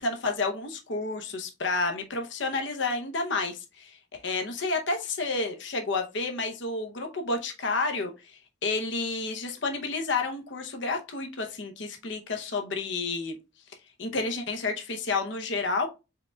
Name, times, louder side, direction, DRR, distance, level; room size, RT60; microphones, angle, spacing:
voice 1, 0.0-8.1 8.6-13.4 14.0-15.9, left 3 dB, 70° left, 5 dB, 0.8 m, -30 dB
4.9 x 4.3 x 2.3 m, 0.27 s
head